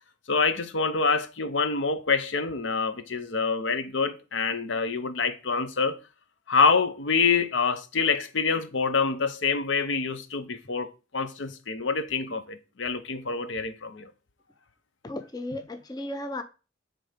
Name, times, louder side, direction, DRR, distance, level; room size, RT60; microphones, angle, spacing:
voice 1, 0.3-6.0 6.5-14.1, left 5 dB, 80° left, 0.7 m, -26 dB
voice 2, 15.0-16.4, left 1 dB, 20° left, 0.5 m, -35 dB
7.6 x 3.4 x 5.0 m
head